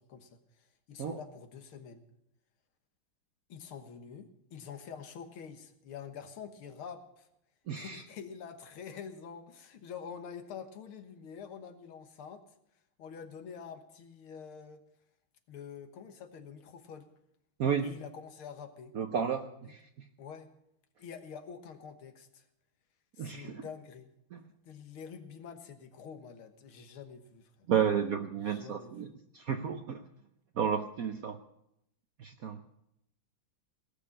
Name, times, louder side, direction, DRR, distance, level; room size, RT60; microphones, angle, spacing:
voice 1, 0.0-2.0 3.5-7.3 7.7-12.4 13.0-14.8 15.5-17.1 17.8-19.0 20.2-20.5 21.0-22.4 23.2-24.1 24.6-27.7 28.4-29.1, left 7 dB, 80° left, 7 dB, 2.1 m, -47 dB
voice 2, 7.7-8.0 17.6-17.9 18.9-19.8 23.2-23.6 24.3-24.4 27.7-30.0 30.6-31.4 32.2-32.6, right 8 dB, 65° right, 7 dB, 0.8 m, -32 dB
18.5 x 6.7 x 8.8 m, 0.79 s
omnidirectional pair, 2.3 m